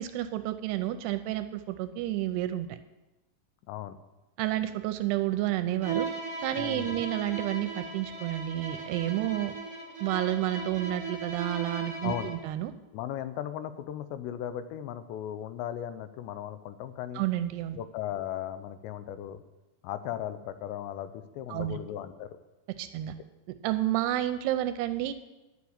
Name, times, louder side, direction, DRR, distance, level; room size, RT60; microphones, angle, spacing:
voice 1, 0.0-2.8 4.4-6.1 6.4-9.5 10.0-12.7 17.2-17.8 21.5-21.8 22.8-23.1 23.6-25.1, right 14 dB, 80° right, 10 dB, 2.5 m, -30 dB
Bowed string instrument, 5.8-12.5, right 4 dB, 45° right, 0.9 m, -37 dB
voice 2, 6.6-7.0 12.0-12.3 12.9-17.2 17.8-19.4 19.8-22.3, left 11 dB, 85° left, 12 dB, 2.9 m, -37 dB
10.5 x 7.3 x 8.7 m, 1.1 s
omnidirectional pair, 5.0 m